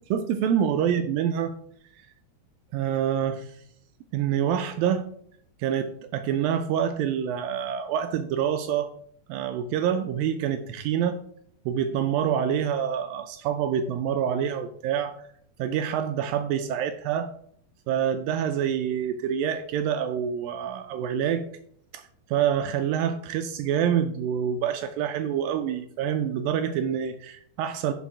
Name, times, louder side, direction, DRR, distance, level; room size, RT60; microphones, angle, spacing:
voice 1, 0.1-1.5 2.7-3.5 4.1-5.1 5.6-8.9 9.3-11.2 11.7-15.1 15.6-17.3 17.9-21.5 21.9-22.0 22.3-27.9, right 9 dB, 80° right, 9 dB, 2.2 m, -26 dB
10.0 x 5.2 x 4.7 m, 0.66 s
omnidirectional pair, 4.4 m